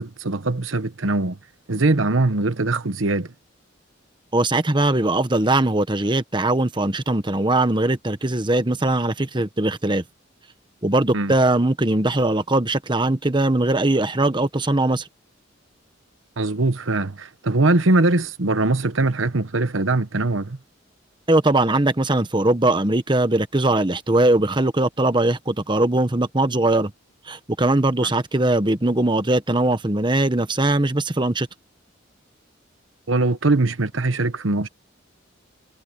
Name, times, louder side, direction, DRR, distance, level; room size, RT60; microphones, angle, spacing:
voice 1, 0.0-1.4 1.7-3.3 11.1-11.3 16.4-20.6 33.1-34.7, right 2 dB, 85° right, 1.1 m, -21 dB
voice 2, 4.3-10.0 10.8-15.1 21.3-26.9 27.3-31.5, right 2 dB, 25° right, 1.2 m, -20 dB
head